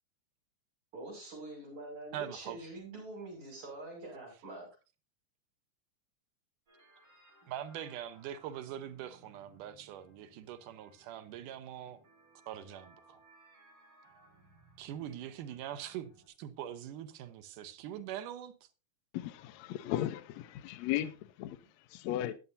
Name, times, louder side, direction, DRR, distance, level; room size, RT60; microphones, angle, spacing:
voice 1, 0.9-4.7, right 2 dB, 60° right, 7.3 m, -45 dB
voice 2, 2.1-2.6 7.5-12.0 12.5-13.2 14.8-16.1 16.4-18.5, right 10 dB, 85° right, 2.5 m, -43 dB
sound 1, 6.7-16.3, right 2 dB, 45° right, 6.5 m, -63 dB
voice 3, 19.1-21.6 21.9-22.3, left 13 dB, 75° left, 1.7 m, -36 dB
20.5 x 7.0 x 2.7 m
omnidirectional pair, 3.6 m